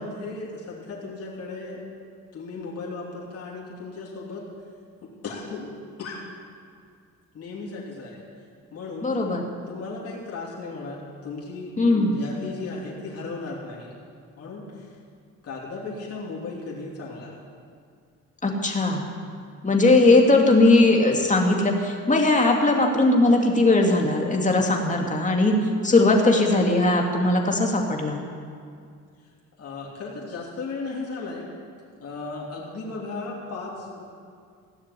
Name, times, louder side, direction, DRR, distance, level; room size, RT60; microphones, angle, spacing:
voice 1, 0.0-1.9 2.3-4.5 5.0-6.3 7.3-8.2 8.7-9.1 9.7-14.0 14.4-14.9 15.4-17.4 29.6-31.5 32.0-34.0, left 3 dB, 50° left, -4 dB, 3.1 m, -36 dB
voice 2, 9.0-9.4 11.8-12.1 18.4-19.0 19.6-25.6 25.8-28.2, left 2 dB, 25° left, 1 dB, 2.3 m, -19 dB
16.5 x 6.6 x 9.8 m, 2.2 s
cardioid pair, 90°, 30 cm